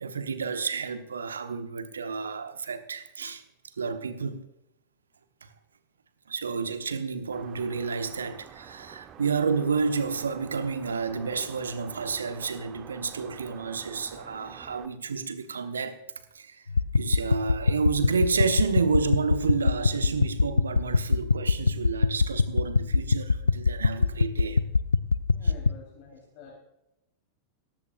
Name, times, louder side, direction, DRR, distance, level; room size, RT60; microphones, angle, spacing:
voice 1, 0.0-3.4 3.8-4.4 5.4-5.5 6.3-16.0 16.3-16.6 16.9-24.6, right 5 dB, 70° right, 1.1 m, -30 dB
sound 1, 7.3-14.9, right 9 dB, 30° right, 0.9 m, -48 dB
sound 2, 16.7-25.7, left 4 dB, 75° left, 0.3 m, -25 dB
voice 2, 25.3-26.5, left 5 dB, 45° left, 3.8 m, -48 dB
16.0 x 15.0 x 2.5 m
figure-of-eight pair, 90°, 0 cm